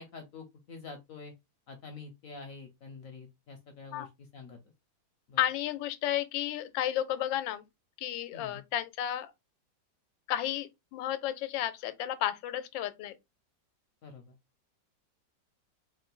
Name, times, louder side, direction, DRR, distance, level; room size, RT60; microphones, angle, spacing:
voice 1, 0.0-1.3 1.7-4.6 5.3-5.4 8.3-8.6 14.0-14.4, left 4 dB, 65° left, 0.9 m, -47 dB
voice 2, 5.4-7.6 8.0-9.3 10.3-13.2, left 12 dB, 85° left, 1.3 m, -32 dB
3.6 x 2.5 x 3.8 m
omnidirectional pair, 2.0 m